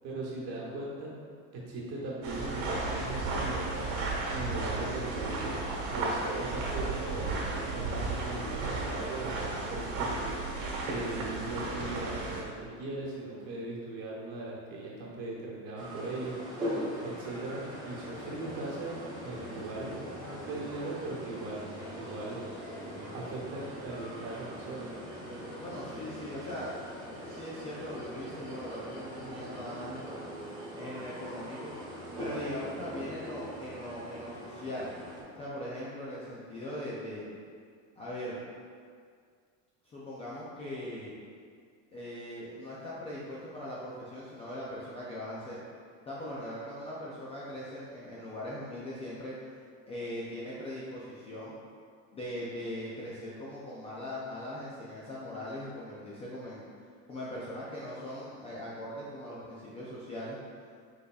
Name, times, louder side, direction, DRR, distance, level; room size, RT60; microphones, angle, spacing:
voice 1, 0.0-1.1 1.5-3.9 4.3-5.5 5.9-10.3 10.9-16.3 17.0-19.0 19.2-20.2 20.5-21.7 22.0-22.4 23.1-24.9, right 2 dB, 40° right, -4 dB, 1.1 m, -39 dB
sound 1, 2.2-12.4, right 2 dB, 75° right, 1.4 m, -34 dB
sound 2, 15.8-35.2, equal, 10° right, 0.9 m, -41 dB
voice 2, 20.2-20.6 25.6-26.7 27.3-30.2 30.7-31.7 32.2-34.9 35.4-37.3 38.0-38.4 39.8-41.1 41.9-45.6 46.1-49.4 49.9-51.5 52.1-56.7 57.1-60.4, left 1 dB, 15° left, -8 dB, 0.4 m, -40 dB
4.8 x 4.6 x 2.3 m, 2.1 s
cardioid pair, 155°, 38 cm